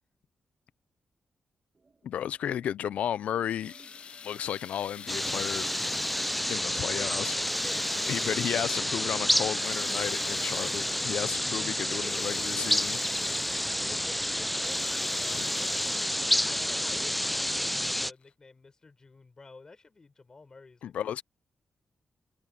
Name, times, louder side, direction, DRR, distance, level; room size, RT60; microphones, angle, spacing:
sound 1, 1.7-16.7, right 4 dB, 30° right, 1.9 m, -61 dB
voice 1, 2.0-3.7 4.2-5.7 6.5-7.4 8.1-13.0 20.8-21.2, left 10 dB, 85° left, 0.4 m, -33 dB
sound 2, 3.4-6.9 7.3-8.9 9.3-11.3 11.8-13.8 14.3-16.4 17.5-17.6 18.2-18.3, left 6 dB, 55° left, 0.8 m, -47 dB
sound 3, 5.1-18.1, equal, 5° left, 0.3 m, -29 dB
voice 2, 6.7-8.1 12.2-12.3 13.5-16.0 16.3-20.9, left 3 dB, 30° left, 4.6 m, -50 dB
wide cardioid pair, 120°, 2 cm